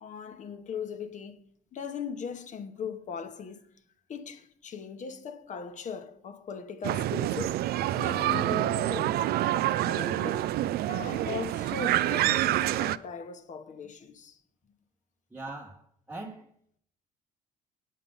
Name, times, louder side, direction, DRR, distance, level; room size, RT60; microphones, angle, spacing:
voice 1, 0.0-1.4 1.7-3.7 4.1-7.6 8.0-9.4 9.9-10.6 10.9-14.4, left 6 dB, 45° left, 1.0 m, -39 dB
sound 1, 6.8-13.0, right 14 dB, 70° right, 0.4 m, -27 dB
voice 2, 15.3-16.5, right 2 dB, 10° right, 0.9 m, -42 dB
8.6 x 8.4 x 5.4 m
cardioid pair, 110°, 17 cm